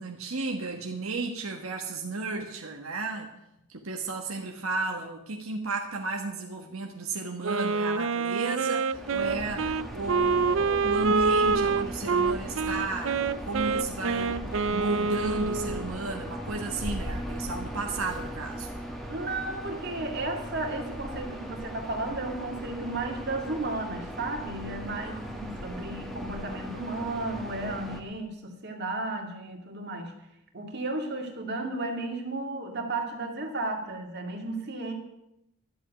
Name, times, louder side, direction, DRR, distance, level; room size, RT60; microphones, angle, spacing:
voice 1, 0.0-3.3 3.7-14.4 14.7-18.7 25.0-26.0, right 3 dB, 85° right, 2 dB, 1.5 m, -34 dB
Wind instrument woodwind instrument, 7.4-15.9, right 4 dB, 70° right, 0.5 m, -27 dB
sound 1, 8.9-28.0, equal, ahead, 1.6 m, -38 dB
voice 2, 19.1-30.1 30.5-34.9, right 2 dB, 50° right, 2 dB, 2.3 m, -34 dB
12.0 x 8.0 x 9.1 m, 0.84 s
head